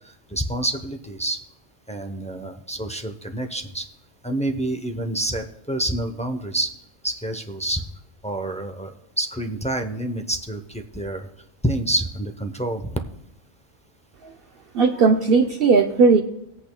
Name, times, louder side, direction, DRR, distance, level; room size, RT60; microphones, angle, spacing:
voice 1, 0.3-1.4 1.9-3.8 4.2-6.7 7.0-7.8 8.2-8.9 9.2-11.3 11.6-13.0, right 1 dB, 10° left, 4 dB, 0.4 m, -27 dB
voice 2, 14.7-16.2, right 4 dB, 60° right, 4 dB, 0.7 m, -17 dB
20.0 x 8.3 x 2.2 m, 0.81 s
omnidirectional pair, 1.2 m